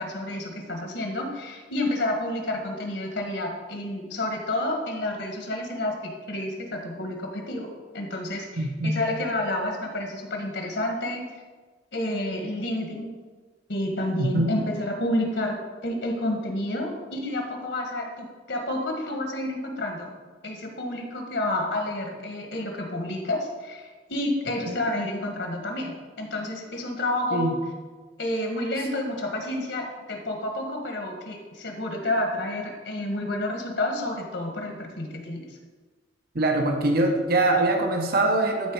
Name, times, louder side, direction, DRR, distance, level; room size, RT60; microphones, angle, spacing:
voice 1, 0.0-11.3 11.9-13.1 13.7-15.6 15.8-20.1 20.4-27.6 28.2-35.5, left 1 dB, 70° left, 2 dB, 1.7 m, -30 dB
voice 2, 8.6-9.0 14.2-14.5 24.7-24.8 27.3-27.5 36.3-38.7, right 2 dB, 55° right, 2 dB, 1.1 m, -23 dB
13.0 x 4.5 x 4.7 m, 1.4 s
head